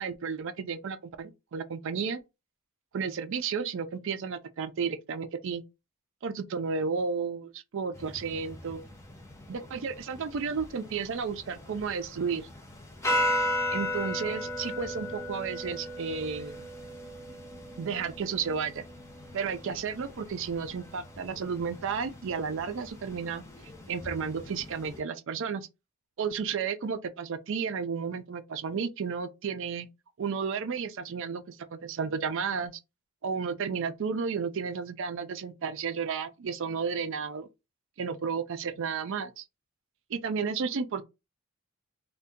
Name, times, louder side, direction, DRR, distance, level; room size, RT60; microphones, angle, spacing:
voice 1, 0.0-2.2 2.9-5.6 6.2-8.8 9.5-12.5 13.7-16.7 17.8-18.8 19.3-23.4 23.9-25.7 26.2-29.9 30.2-32.7 33.2-37.5 38.0-39.4 40.1-41.0, right 6 dB, 60° right, 0.4 m, -32 dB
sound 1, 7.9-25.0, left 1 dB, 15° left, 0.5 m, -37 dB
2.6 x 2.2 x 3.5 m
head